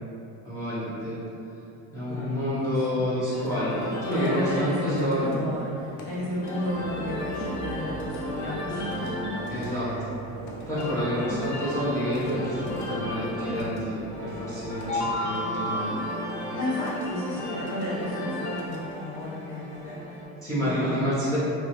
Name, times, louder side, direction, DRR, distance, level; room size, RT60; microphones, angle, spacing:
voice 1, 0.4-1.1 1.9-5.3 9.5-9.9 10.7-15.9 20.4-21.4, equal, 5° left, -10 dB, 1.4 m, -28 dB
voice 2, 2.1-3.1 4.1-10.0 10.4-11.2 16.5-20.2 20.6-21.1, left 1 dB, 65° left, -10 dB, 1.3 m, -33 dB
sound 1, 3.3-20.0, left 1 dB, 45° left, 0.7 m, -34 dB
sound 2, 6.7-15.0, right 2 dB, 15° right, 0.3 m, -40 dB
sound 3, 14.1-20.3, left 1 dB, 85° left, 1.5 m, -42 dB
3.0 x 2.9 x 3.1 m, 2.8 s
supercardioid pair, 110°, 42 cm